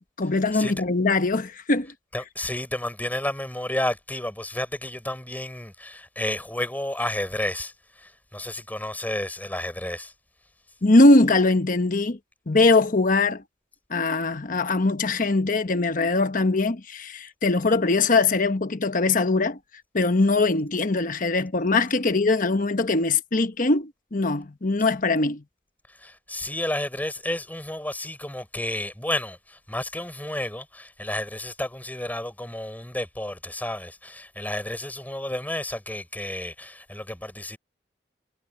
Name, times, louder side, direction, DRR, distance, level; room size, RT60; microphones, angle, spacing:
voice 1, 0.2-1.9 10.8-12.2 12.5-13.4 13.9-19.6 19.9-25.4, left 3 dB, 50° left, 1.1 m, -21 dB
voice 2, 2.1-10.1 25.9-37.6, left 1 dB, 10° left, 3.8 m, -31 dB
head